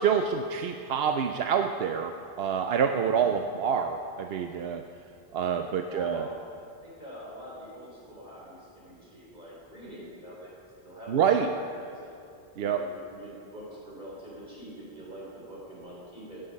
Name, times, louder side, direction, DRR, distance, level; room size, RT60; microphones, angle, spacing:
voice 1, 0.0-4.8 5.3-6.3 11.1-11.5 12.6-12.8, right 7 dB, 75° right, 6 dB, 0.8 m, -27 dB
voice 2, 3.0-3.4 5.8-10.5 10.8-12.2 12.6-16.4, equal, 50° right, -6 dB, 3.6 m, -44 dB
16.5 x 8.0 x 5.2 m, 2.4 s
omnidirectional pair, 1.1 m